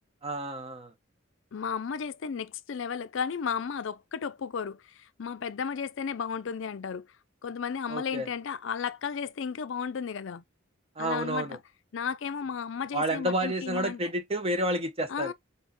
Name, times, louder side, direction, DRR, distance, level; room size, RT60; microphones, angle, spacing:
voice 1, 0.2-0.9 7.9-8.3 11.0-11.6 12.9-15.3, right 1 dB, 30° right, 0.8 m, -30 dB
voice 2, 1.5-7.0 7.4-10.4 11.0-11.5 11.9-14.0 15.1-15.3, left 6 dB, 60° left, 0.4 m, -34 dB
4.3 x 4.0 x 3.0 m
head